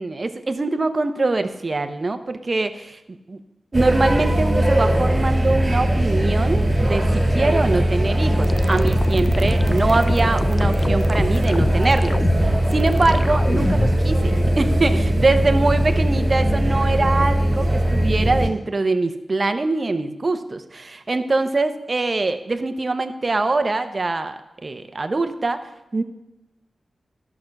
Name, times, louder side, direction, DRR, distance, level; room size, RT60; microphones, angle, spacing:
voice 1, 0.0-3.4 3.7-26.0, right 3 dB, 35° right, 9 dB, 0.8 m, -23 dB
sound 1, 3.7-18.5, right 1 dB, 20° right, 2.6 m, -20 dB
sound 2, 8.4-14.0, left 2 dB, 30° left, 0.5 m, -27 dB
13.0 x 6.0 x 6.5 m, 0.93 s
wide cardioid pair, 115°, 0 cm